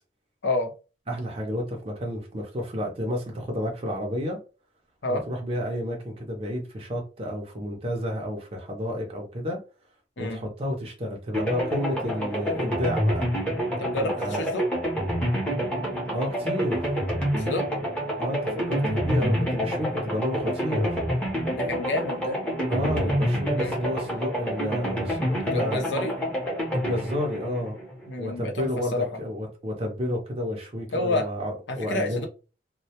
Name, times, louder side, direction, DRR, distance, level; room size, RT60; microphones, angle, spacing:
voice 1, 1.1-4.4 5.1-9.6 10.2-13.3 14.0-14.5 16.1-16.9 18.2-21.0 22.7-25.8 26.7-27.8 28.2-32.3, equal, 30° right, 0.5 m, -30 dB
sound 1, 11.3-28.3, equal, 5° left, 0.7 m, -28 dB
voice 2, 13.8-14.6 17.4-17.7 21.5-22.4 23.5-23.8 25.5-26.1 28.1-29.1 30.9-31.3 31.7-32.3, left 2 dB, 70° left, 0.6 m, -29 dB
2.1 x 2.0 x 2.8 m
head